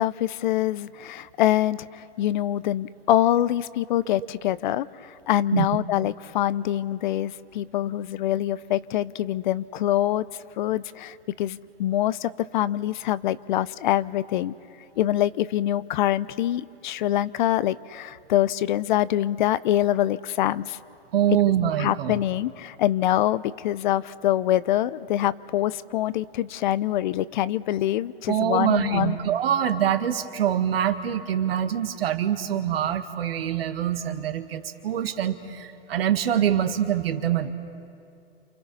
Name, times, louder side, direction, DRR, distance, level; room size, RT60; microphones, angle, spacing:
voice 1, 0.0-10.3 10.6-14.5 15.0-20.8 21.8-29.2, left 13 dB, 50° left, 17 dB, 0.7 m, -25 dB
voice 2, 21.1-22.2 28.3-37.5, right 10 dB, 65° right, 8 dB, 2.0 m, -24 dB
28.5 x 28.5 x 5.6 m, 2.5 s
hypercardioid pair, 135°, 32 cm